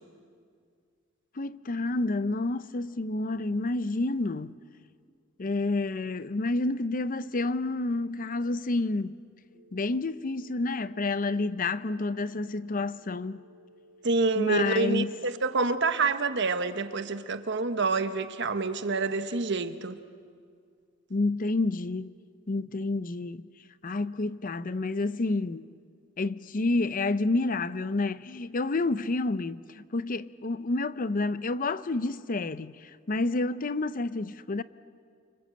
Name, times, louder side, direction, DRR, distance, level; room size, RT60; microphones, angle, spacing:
voice 1, 1.4-4.5 5.4-9.1 9.7-13.4 14.4-15.2 21.1-22.1 22.5-23.4 23.8-25.7 26.2-34.6, left 2 dB, 45° left, 0.6 m, -29 dB
sound 1, 9.5-19.5, equal, 60° left, 4.5 m, -57 dB
voice 2, 14.0-20.0, right 3 dB, 60° right, 1.2 m, -27 dB
29.0 x 25.5 x 7.8 m
head